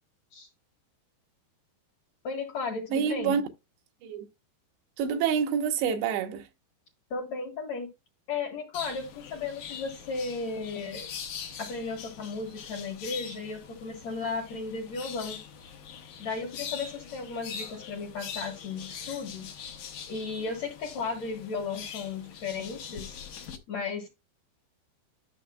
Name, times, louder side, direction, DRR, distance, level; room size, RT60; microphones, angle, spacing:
voice 1, 2.2-3.4 7.1-7.9 8.3-11.1 11.6-15.4 16.2-19.5 20.1-23.2 23.7-24.1, left 4 dB, 55° left, 2.2 m, -35 dB
voice 2, 2.9-3.4 4.0-4.3 5.0-6.5, right 7 dB, 85° right, 3.2 m, -27 dB
sound 1, 8.7-23.6, left 7 dB, 70° left, 1.8 m, -43 dB
11.5 x 6.3 x 2.2 m
omnidirectional pair, 4.9 m